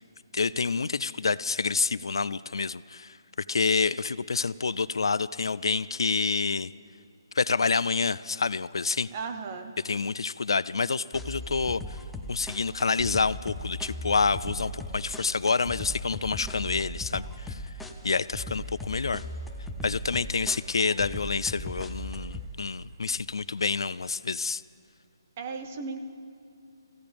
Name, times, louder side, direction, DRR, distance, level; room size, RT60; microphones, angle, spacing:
voice 1, 0.3-3.2 3.5-6.7 7.3-9.1 9.8-12.0 12.3-17.6 18.0-19.2 19.8-24.6, left 4 dB, 80° left, 19 dB, 0.3 m, -28 dB
voice 2, 9.1-9.7 16.4-16.7 25.4-26.0, right 5 dB, 20° right, 6 dB, 0.8 m, -36 dB
sound 1, 11.1-22.5, equal, ahead, 0.4 m, -38 dB
25.0 x 16.0 x 3.4 m, 2.3 s
hypercardioid pair, 175°, 2 cm